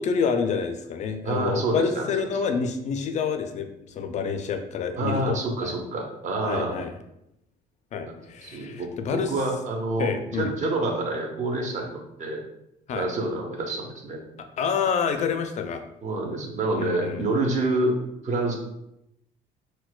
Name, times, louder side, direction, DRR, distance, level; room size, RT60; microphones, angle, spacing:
voice 1, 0.0-5.7 6.4-6.9 7.9-9.3 10.0-10.5 12.9-13.1 14.6-15.9 16.8-17.3, left 6 dB, 45° left, 7 dB, 0.4 m, -28 dB
voice 2, 1.2-2.1 5.0-6.8 8.0-8.1 8.4-12.4 12.9-14.2 16.0-17.9 18.2-18.5, right 2 dB, 45° right, 1 dB, 0.7 m, -27 dB
4.2 x 2.1 x 2.3 m, 0.84 s
cardioid pair, 110°, 17 cm